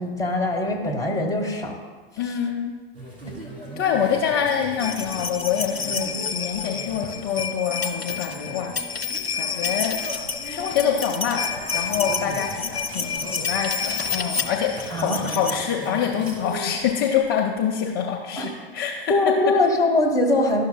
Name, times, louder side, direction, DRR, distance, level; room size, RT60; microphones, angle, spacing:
voice 1, 0.0-1.8 5.9-6.1 14.9-15.2 18.4-18.5 19.1-20.7, left 2 dB, 10° left, 2 dB, 1.1 m, -22 dB
voice 2, 2.2-2.7 3.8-8.7 9.3-10.0 10.4-19.1, left 8 dB, 35° left, -1 dB, 0.7 m, -26 dB
sound 1, 2.9-16.7, equal, 85° right, 1.6 m, -38 dB
sound 2, 4.8-15.6 16.6-16.7 16.9-17.0, left 5 dB, 90° left, 0.5 m, -29 dB
11.5 x 6.1 x 2.2 m, 1.4 s
figure-of-eight pair, 85°, 30 cm